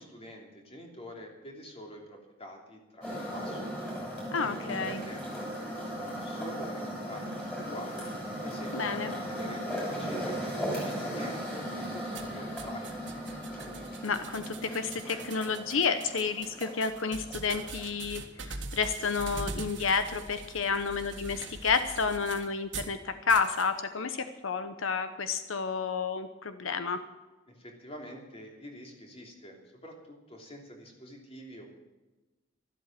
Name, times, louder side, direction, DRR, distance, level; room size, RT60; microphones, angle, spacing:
voice 1, 0.0-3.7 4.6-8.1 8.4-13.2 27.5-31.7, equal, 30° left, 1 dB, 3.1 m, -46 dB
sound 1, 3.0-17.8, equal, 5° left, 7.0 m, -37 dB
voice 2, 4.3-5.0 8.7-9.1 14.0-27.0, left 5 dB, 85° left, 10 dB, 0.9 m, -30 dB
sound 2, 12.1-23.0 23.3-23.7, right 4 dB, 60° right, 1.8 m, -43 dB
13.5 x 12.0 x 7.5 m, 1.1 s
head